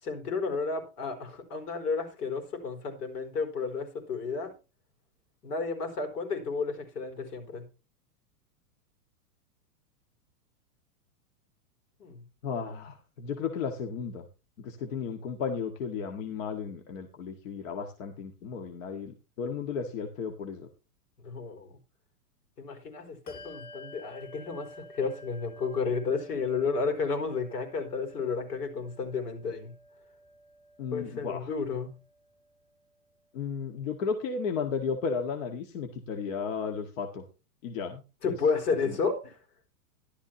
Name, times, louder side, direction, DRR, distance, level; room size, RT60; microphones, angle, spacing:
voice 1, 0.0-4.5 5.4-7.6 12.0-12.2 21.2-21.8 22.6-29.7 30.9-31.9 38.2-39.4, left 4 dB, 75° left, 4.4 m, -32 dB
voice 2, 12.4-14.2 14.6-20.7 30.8-31.5 33.3-37.2 37.6-38.3 38.8-38.9, left 6 dB, 55° left, 1.8 m, -34 dB
Bell, 23.3-33.2, left 1 dB, 15° left, 2.1 m, -52 dB
14.5 x 12.0 x 2.9 m
hypercardioid pair, 150°, 47 cm